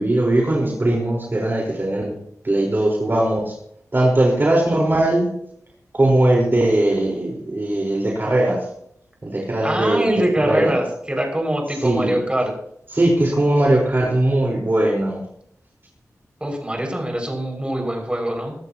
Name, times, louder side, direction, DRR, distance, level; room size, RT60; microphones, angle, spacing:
voice 1, 0.0-2.1 2.4-3.5 3.9-5.3 5.9-8.6 9.2-10.1 10.4-10.8 11.8-12.2 12.9-15.2, right 1 dB, 40° right, -2 dB, 4.6 m, -19 dB
voice 2, 9.6-12.5 16.4-18.5, right 1 dB, 20° right, 1 dB, 6.3 m, -23 dB
23.5 x 13.5 x 3.0 m, 0.71 s
cardioid pair, 55°, 6 cm